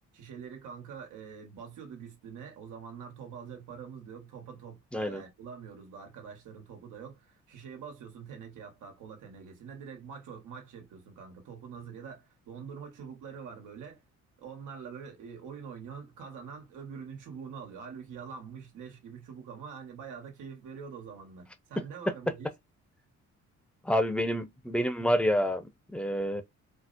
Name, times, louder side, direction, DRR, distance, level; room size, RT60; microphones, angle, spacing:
voice 1, 0.1-14.0 14.4-22.5, right 6 dB, 80° right, 1.5 m, -45 dB
voice 2, 23.8-26.4, equal, 5° left, 0.7 m, -28 dB
4.5 x 2.0 x 2.6 m
cardioid pair, 90°, 30 cm